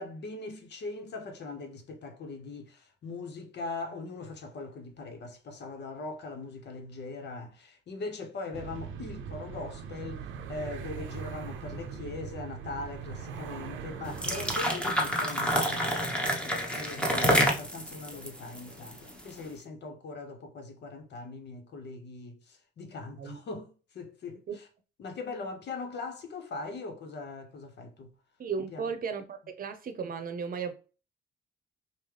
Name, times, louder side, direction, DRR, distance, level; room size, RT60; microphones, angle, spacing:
voice 1, 0.0-24.7 25.0-28.1 28.7-28.9, left 3 dB, 60° left, 1.0 m, -41 dB
sound 1, 8.5-14.6, right 7 dB, 75° right, 0.6 m, -40 dB
sound 2, 14.0-19.3, equal, 5° left, 1.1 m, -28 dB
voice 2, 28.4-30.7, right 6 dB, 45° right, 0.8 m, -35 dB
5.3 x 2.2 x 3.3 m
cardioid pair, 90°, 20 cm